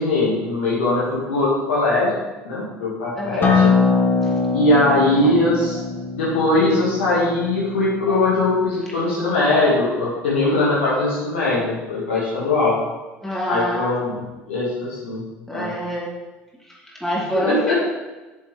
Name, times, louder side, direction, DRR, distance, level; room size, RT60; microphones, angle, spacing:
voice 1, 0.0-2.1 2.4-3.7 4.5-5.8 6.2-12.8 13.5-14.2 14.5-15.2 15.5-15.7 17.3-17.7, left 2 dB, 80° left, -7 dB, 1.8 m, -20 dB
voice 2, 3.2-3.5 13.2-14.0 15.5-16.1 16.7-17.7, equal, 5° left, -6 dB, 2.4 m, -26 dB
Acoustic guitar, 3.4-8.6, left 4 dB, 35° left, 1.4 m, -22 dB
7.6 x 6.7 x 3.2 m, 1.2 s
hypercardioid pair, 70°, 6 cm